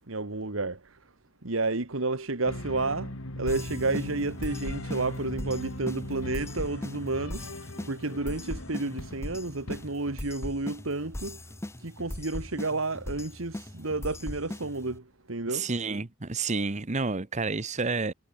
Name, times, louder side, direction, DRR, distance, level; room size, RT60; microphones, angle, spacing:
voice 1, 0.1-0.8 1.4-3.1 3.4-7.5 7.9-11.4 11.8-15.0 15.3-15.7, right 3 dB, 80° right, 1.8 m, -31 dB
sound 1, 2.4-9.9, left 1 dB, 90° left, 3.7 m, -39 dB
sound 2, 3.5-15.0, left 1 dB, 15° left, 0.8 m, -40 dB
voice 2, 15.5-18.1, right 4 dB, 35° right, 1.0 m, -30 dB
head